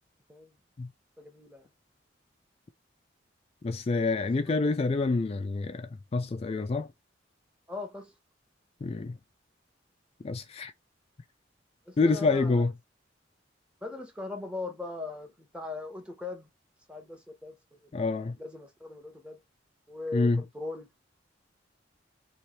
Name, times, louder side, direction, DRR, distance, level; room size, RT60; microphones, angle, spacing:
voice 1, 1.2-1.7 4.2-4.6 7.7-8.1 11.9-12.6 13.8-16.5 16.9-17.6 17.8-19.4 19.9-20.9, left 3 dB, 5° right, 1.0 m, -40 dB
voice 2, 3.6-6.9 8.8-9.2 10.2-10.7 12.0-12.7 17.9-18.4 20.1-20.4, left 3 dB, 35° left, 0.3 m, -27 dB
3.2 x 3.0 x 4.3 m
head